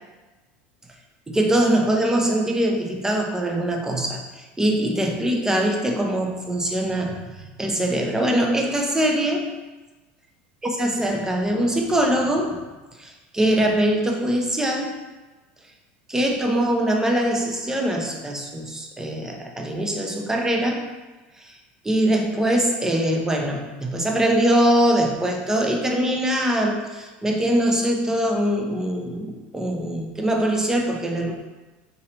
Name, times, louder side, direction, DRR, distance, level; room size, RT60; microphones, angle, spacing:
voice 1, 1.3-9.5 10.6-12.6 13.0-15.0 16.1-20.8 21.4-21.6 21.8-31.3, right 1 dB, 10° right, 2 dB, 0.6 m, -22 dB
3.9 x 2.9 x 3.0 m, 1.2 s
supercardioid pair, 105°, 5 cm